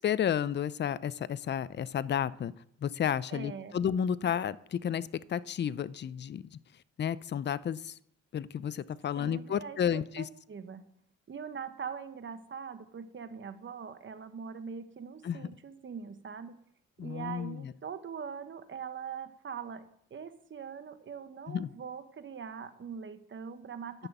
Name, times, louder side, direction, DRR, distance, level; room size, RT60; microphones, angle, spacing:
voice 1, 0.0-2.5 2.8-6.6 7.0-8.0 8.3-10.3 15.2-15.5 17.0-17.7 21.5-21.7, left 9 dB, 35° left, 18 dB, 0.5 m, -32 dB
voice 2, 3.3-3.8 9.2-10.8 11.3-16.6 17.0-19.8 20.1-24.1, right 6 dB, 40° right, 10 dB, 1.2 m, -42 dB
10.5 x 6.0 x 8.0 m, 0.69 s
cardioid pair, 90°, 30 cm